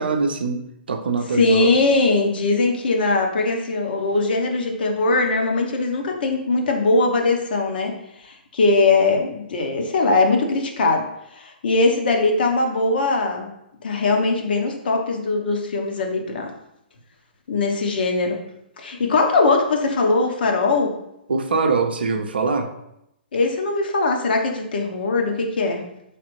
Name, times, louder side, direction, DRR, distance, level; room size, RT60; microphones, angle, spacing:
voice 1, 0.0-1.7 21.3-22.7, right 4 dB, 70° right, 5 dB, 0.5 m, -23 dB
voice 2, 1.3-7.9 8.2-11.1 11.4-13.5 13.8-16.5 17.5-18.4 18.8-21.0 23.3-25.8, left 3 dB, 65° left, 2 dB, 0.7 m, -20 dB
4.0 x 3.3 x 3.0 m, 0.82 s
figure-of-eight pair, 125°, 6 cm